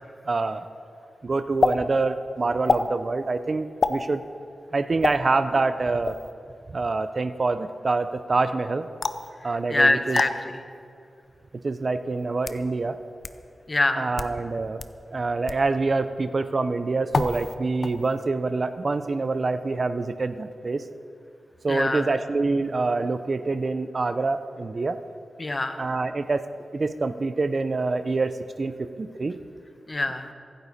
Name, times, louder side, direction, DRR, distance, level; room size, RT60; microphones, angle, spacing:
voice 1, 0.3-0.6 1.2-4.2 4.7-6.2 6.7-8.9 9.4-10.2 11.6-13.0 14.0-14.8 15.1-20.8 21.6-25.0 25.8-26.5 26.7-29.4, right 3 dB, 50° right, 11 dB, 0.6 m, -26 dB
sound 1, 1.6-1.8 2.7-2.9 3.8-4.0 5.0-5.2 6.0-6.3 9.0-9.3 10.1-10.3 11.2-11.3 12.2-12.6 13.2-13.3 14.0-14.4 14.8-14.9 15.5-15.7 17.1-17.6 17.8-18.2, left 4 dB, 65° left, 0.6 m, -26 dB
voice 2, 9.4-10.6 13.7-14.1 21.7-22.1 25.4-25.8 29.9-30.3, left 2 dB, 35° left, 7 dB, 1.2 m, -24 dB
23.5 x 9.4 x 4.2 m, 2.4 s
cardioid pair, 70°, 0 cm